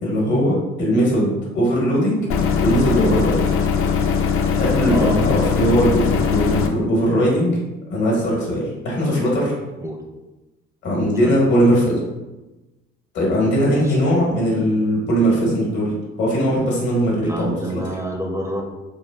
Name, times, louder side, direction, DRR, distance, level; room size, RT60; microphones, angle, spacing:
voice 1, 0.0-2.2 2.6-3.4 4.6-7.5 7.9-9.5 10.8-12.0 13.1-15.9 16.2-17.8, equal, 70° left, -4 dB, 1.3 m, -19 dB
sound 1, 2.3-6.7, left 6 dB, 50° left, 0.4 m, -20 dB
voice 2, 4.9-5.2 9.8-10.0 11.2-11.4 13.6-14.0 17.2-18.6, right 1 dB, 10° right, 0 dB, 0.4 m, -27 dB
3.6 x 2.2 x 2.2 m, 1.1 s
supercardioid pair, 60°, 29 cm